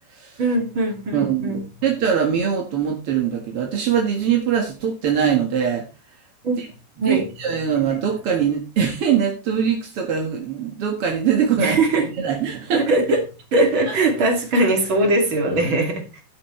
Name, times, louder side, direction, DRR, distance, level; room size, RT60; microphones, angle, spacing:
voice 1, 0.4-1.6 6.4-6.6 7.0-7.3 11.6-12.1 12.7-13.2 13.5-16.2, right 2 dB, 35° right, 3 dB, 2.9 m, -20 dB
voice 2, 1.1-5.9 6.6-6.7 7.0-12.9 13.9-14.0, right 8 dB, 50° right, 1 dB, 1.8 m, -22 dB
11.5 x 11.0 x 3.3 m, 0.31 s
omnidirectional pair, 4.9 m